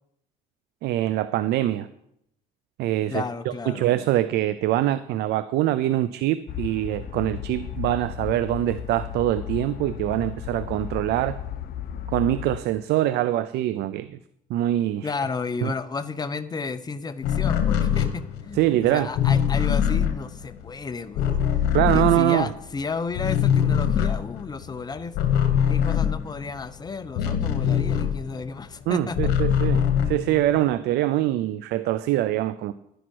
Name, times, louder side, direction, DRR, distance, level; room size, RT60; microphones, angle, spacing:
voice 1, 0.8-1.9 2.8-11.4 12.1-14.2 14.5-15.1 15.6-15.7 18.5-19.1 21.7-22.5 28.9-32.7, right 14 dB, 80° right, 14 dB, 0.5 m, -24 dB
voice 2, 3.1-3.9 15.0-21.3 21.9-25.2 25.7-29.3, left 4 dB, 25° left, 11 dB, 0.8 m, -32 dB
sound 1, 6.5-12.6, left 10 dB, 60° left, 0.9 m, -34 dB
sound 2, 17.2-22.8 23.1-28.6 28.9-30.7, left 9 dB, 80° left, 1.3 m, -23 dB
11.5 x 10.0 x 4.7 m, 0.76 s
cardioid pair, 110°, 17 cm